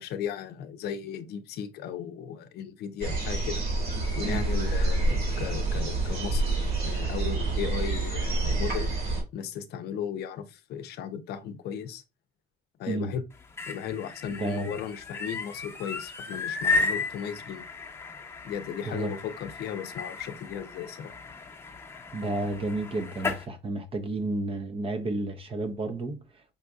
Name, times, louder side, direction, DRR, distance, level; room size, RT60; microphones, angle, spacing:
voice 1, 0.0-3.7 4.1-6.5 6.8-8.9 9.3-12.0 12.8-13.2 13.7-17.7 18.4-21.1, left 8 dB, 75° left, 0.6 m, -36 dB
sound 1, 3.0-9.2, right 2 dB, 65° right, 2.4 m, -27 dB
sound 2, 13.3-23.4, left 3 dB, 15° left, 0.8 m, -34 dB
voice 2, 14.3-14.7 18.9-19.1 22.1-26.2, right 2 dB, 35° right, 0.7 m, -31 dB
5.3 x 2.6 x 2.3 m
cardioid pair, 110°, 17 cm